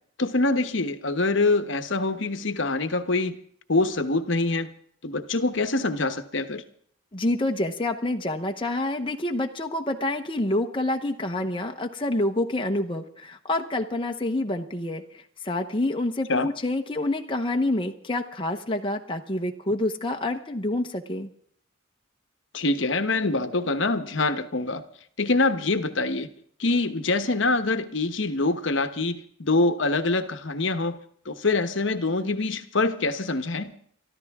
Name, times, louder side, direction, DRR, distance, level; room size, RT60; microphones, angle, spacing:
voice 1, 0.2-3.4 3.7-4.7 5.0-6.6 16.3-16.5 22.5-24.8 25.2-26.3 26.6-31.0 31.2-33.7, left 3 dB, 60° left, 10 dB, 1.1 m, -25 dB
voice 2, 7.1-21.3, left 1 dB, 25° left, 3 dB, 0.9 m, -27 dB
24.0 x 13.5 x 3.6 m, 0.62 s
head